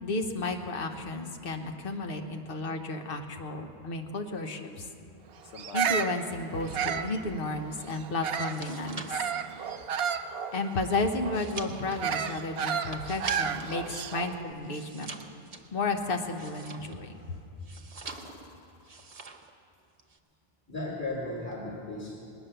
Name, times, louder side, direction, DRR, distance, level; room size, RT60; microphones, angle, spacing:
voice 1, 0.0-4.9 5.7-9.2 10.5-15.1 15.7-17.1, left 2 dB, 65° left, 5 dB, 1.2 m, -32 dB
sound 1, 4.3-4.9 5.4-6.1 6.4-7.2 8.6-9.9 13.3-14.6 17.1-17.5 18.0-19.4 21.5-21.6, left 2 dB, 90° left, 1.1 m, -49 dB
Bird vocalization bird call bird song, 5.6-8.7 9.1-14.4, right 7 dB, 75° right, 0.9 m, -32 dB
sound 2, 8.4-13.8 14.1-17.1 17.6-18.5 18.8-19.5 19.8-20.2, right 4 dB, 40° right, 0.9 m, -44 dB
voice 2, 20.7-22.1, left 2 dB, 15° left, -6 dB, 2.3 m, -35 dB
20.0 x 9.3 x 6.8 m, 2.6 s
omnidirectional pair, 1.0 m